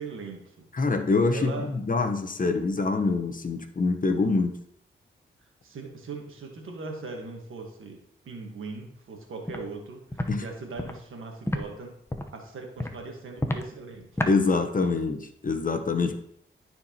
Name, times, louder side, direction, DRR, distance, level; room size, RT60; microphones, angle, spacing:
voice 1, 0.0-0.7 1.3-1.7 5.6-8.0 8.2-11.9 12.3-14.1, right 4 dB, 90° right, 2 dB, 1.4 m, -39 dB
voice 2, 0.7-4.5 10.3-10.4 14.3-16.2, left 3 dB, 40° left, 6 dB, 1.0 m, -25 dB
Walk footsteps, 9.5-9.6 10.1-10.3 10.8-10.9 11.5-11.6 12.1-12.3 12.8-12.9 13.4-13.6 14.2-14.3, left 1 dB, 10° left, 0.9 m, -29 dB
13.0 x 4.5 x 2.9 m, 0.72 s
cardioid pair, 55°, 20 cm